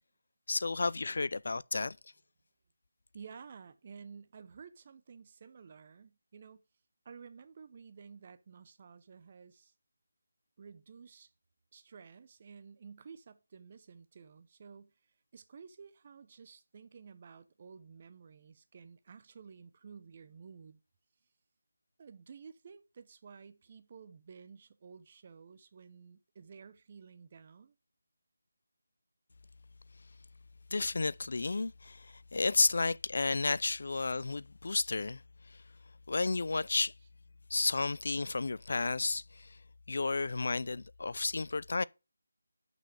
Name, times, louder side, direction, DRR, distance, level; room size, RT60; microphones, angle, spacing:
voice 1, 0.5-2.0 30.7-35.6 36.1-36.9 37.5-39.6 39.9-41.8, left 3 dB, 60° left, 0.3 m, -32 dB
voice 2, 3.1-6.6 7.0-9.7 10.6-11.3 11.7-14.9 15.3-20.8 22.0-27.8, right 6 dB, 35° right, 0.8 m, -53 dB
6.1 x 5.3 x 6.5 m
figure-of-eight pair, 170°, 0 cm